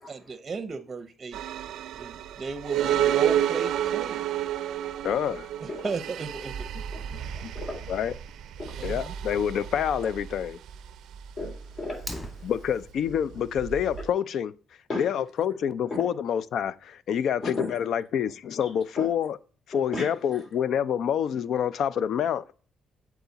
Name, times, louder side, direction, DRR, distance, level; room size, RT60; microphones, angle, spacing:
voice 1, 0.1-1.4 2.0-4.2 5.6-6.7 8.8-9.1, right 4 dB, 35° right, 0.6 m, -35 dB
sound 1, 1.3-14.1, right 10 dB, 80° right, 0.4 m, -31 dB
voice 2, 5.0-5.5 7.4-7.5 7.9-8.1 8.8-10.6 12.4-14.5 15.0-19.4 19.7-22.4, left 8 dB, 70° left, 0.4 m, -27 dB
voice 3, 6.9-7.9 8.6-8.9 11.4-12.5 14.9-15.1 17.4-17.8 18.6-18.7 19.0-19.1 19.9-20.1, left 2 dB, 45° left, 2.9 m, -35 dB
Fire, 11.9-12.9, equal, 5° left, 2.3 m, -40 dB
8.1 x 4.8 x 3.9 m
cardioid pair, 90°, 0 cm